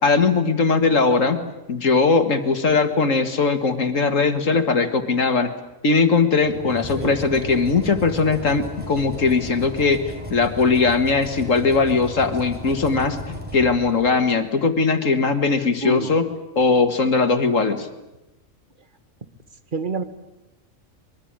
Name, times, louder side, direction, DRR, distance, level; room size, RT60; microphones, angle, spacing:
voice 1, 0.0-1.4 1.7-5.5 5.8-10.0 10.3-16.2 16.6-17.9, left 4 dB, 75° left, 8 dB, 2.2 m, -19 dB
sound 1, 6.4-14.4, equal, 5° right, 4.4 m, -35 dB
voice 2, 15.8-16.2 19.7-20.0, right 3 dB, 40° right, 10 dB, 1.8 m, -26 dB
24.5 x 22.5 x 8.9 m, 0.95 s
omnidirectional pair, 1.4 m